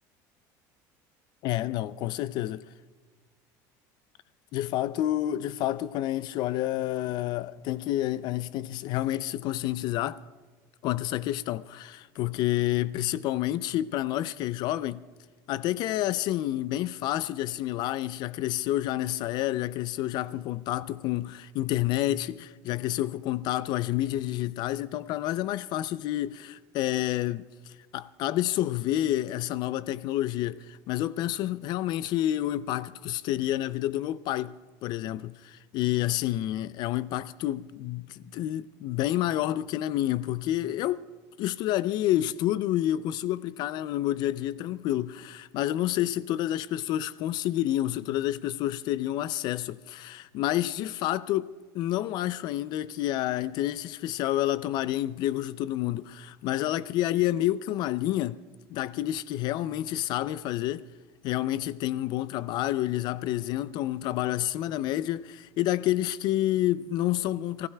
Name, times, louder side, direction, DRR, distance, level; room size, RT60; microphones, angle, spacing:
voice 1, 1.4-2.6 4.5-10.2 10.8-15.0 15.5-41.0 41.4-58.4 58.7-60.9 61.2-67.7, left 14 dB, 50° left, 0.3 m, -29 dB
29.0 x 15.5 x 2.2 m
cardioid pair, 150°, 9 cm